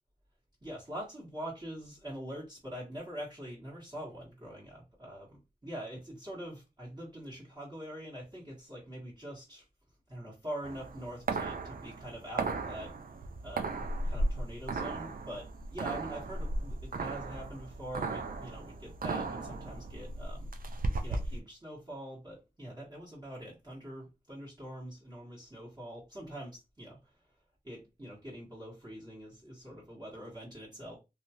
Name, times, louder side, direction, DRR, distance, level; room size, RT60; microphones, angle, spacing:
voice 1, 0.6-9.6 10.1-12.9 13.4-13.8 14.1-20.5 21.0-27.0 27.6-31.0, right 1 dB, 25° right, 1.4 m, -44 dB
sound 1, 10.6-21.4, right 2 dB, 60° right, 0.4 m, -36 dB
2.7 x 2.3 x 2.8 m
wide cardioid pair, 50°, 17 cm